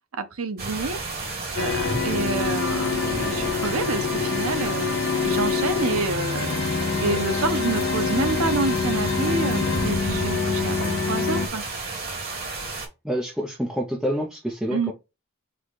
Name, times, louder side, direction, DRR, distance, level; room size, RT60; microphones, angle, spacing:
voice 1, 0.2-1.0 1.6-4.9 5.2-6.5 7.0-11.6 14.7-14.9, right 3 dB, 80° right, 0.8 m, -28 dB
sound 1, 0.6-12.9, right 3 dB, 45° right, 1.8 m, -32 dB
sound 2, 1.6-11.5, left 5 dB, 55° left, 0.7 m, -26 dB
voice 2, 13.0-14.9, equal, 5° right, 0.7 m, -27 dB
4.8 x 2.4 x 4.1 m
head